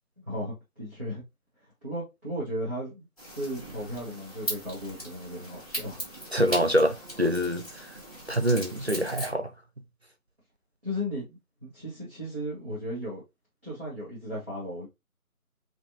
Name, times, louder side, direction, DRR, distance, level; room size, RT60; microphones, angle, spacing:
voice 1, 0.2-1.2 1.8-6.0 10.8-13.2 13.6-14.9, equal, 10° left, 1.7 m, -35 dB
sound 1, 3.2-9.3, equal, 25° left, 2.2 m, -39 dB
voice 2, 6.3-7.9 8.3-9.5, equal, 50° right, 0.5 m, -25 dB
5.5 x 2.7 x 2.9 m
figure-of-eight pair, 165°, 44 cm